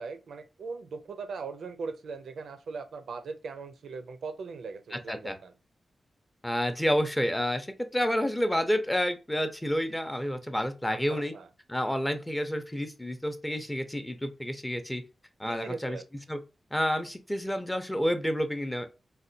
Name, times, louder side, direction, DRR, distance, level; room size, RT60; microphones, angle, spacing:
voice 1, 0.0-5.5 10.9-11.5 15.4-16.0, right 4 dB, 90° right, 0.4 m, -39 dB
voice 2, 4.9-5.4 6.4-11.3 11.7-15.0 15.4-16.0 16.3-16.4 16.7-18.9, equal, 10° left, 0.5 m, -29 dB
4.0 x 2.2 x 2.6 m
wide cardioid pair, 105°, 0 cm